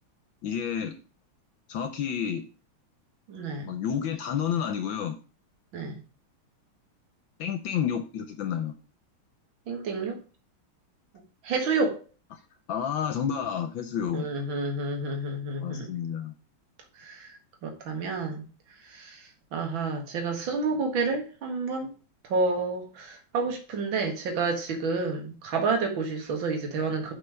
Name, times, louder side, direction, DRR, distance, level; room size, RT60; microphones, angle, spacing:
voice 1, 0.4-0.9 1.7-2.4 3.7-5.2 7.4-8.8 12.3-12.4 12.7-14.3 15.6-16.4, left 8 dB, 70° left, 1.5 m, -30 dB
voice 2, 3.3-3.7 5.7-6.0 9.7-10.2 11.4-12.0 14.1-15.9 17.0-18.4 18.8-21.9 22.2-27.1, right 3 dB, 65° right, 2.4 m, -30 dB
6.1 x 5.5 x 6.3 m
omnidirectional pair, 2.3 m